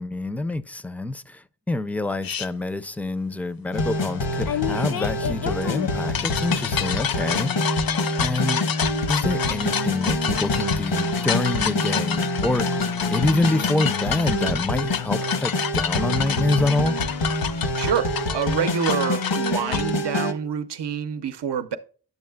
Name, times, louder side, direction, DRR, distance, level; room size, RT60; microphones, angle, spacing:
voice 1, 0.0-7.8 8.2-8.6 9.1-12.8 13.1-17.0, left 2 dB, 5° left, 0.4 m, -26 dB
sound 1, 2.2-2.5 4.5-19.9, left 8 dB, 60° left, 0.5 m, -29 dB
sound 2, 3.7-20.3, left 2 dB, 85° left, 1.0 m, -26 dB
voice 2, 17.5-21.8, right 7 dB, 75° right, 0.7 m, -27 dB
9.5 x 7.1 x 2.2 m
wide cardioid pair, 70°, 42 cm